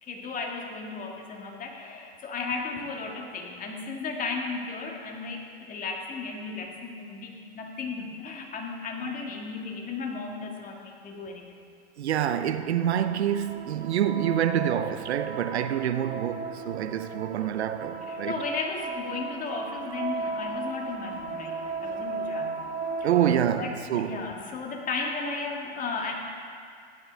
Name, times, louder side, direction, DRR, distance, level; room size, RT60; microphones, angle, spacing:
voice 1, 0.0-11.5 18.0-22.6 23.0-23.1 23.5-26.1, left 4 dB, 25° left, 1.8 m, -35 dB
voice 2, 12.0-18.4 23.0-24.3, right 10 dB, 85° right, 0.7 m, -27 dB
sound 1, 12.5-23.4, right 4 dB, 25° right, 0.8 m, -36 dB
15.5 x 11.0 x 3.4 m
hypercardioid pair, 115°, 32 cm